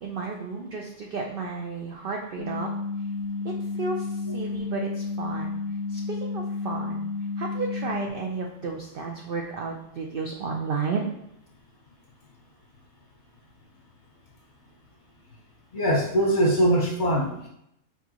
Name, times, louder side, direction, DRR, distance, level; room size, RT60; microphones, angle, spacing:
voice 1, 0.0-2.7 3.4-5.6 5.9-7.1 7.4-11.1, right 4 dB, 75° right, 1 dB, 0.5 m, -32 dB
sound 1, 2.4-8.1, left 4 dB, 90° left, 1.1 m, -31 dB
voice 2, 15.7-17.5, right 1 dB, 45° left, -2 dB, 0.8 m, -22 dB
4.5 x 4.0 x 2.9 m, 0.79 s
omnidirectional pair, 1.5 m